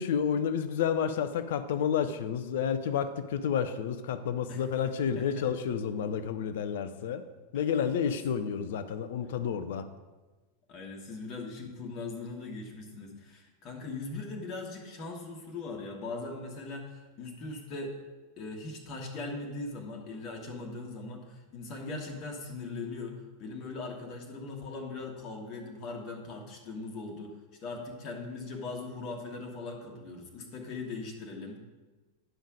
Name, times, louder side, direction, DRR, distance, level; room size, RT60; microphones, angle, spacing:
voice 1, 0.0-7.2 7.5-9.9, left 7 dB, 55° left, 12 dB, 0.6 m, -30 dB
voice 2, 5.1-5.5 7.5-7.7 10.7-18.0 18.4-27.3 27.6-31.6, left 3 dB, 35° left, 0 dB, 1.4 m, -40 dB
10.0 x 5.5 x 5.0 m, 1.2 s
figure-of-eight pair, 90°, 0 cm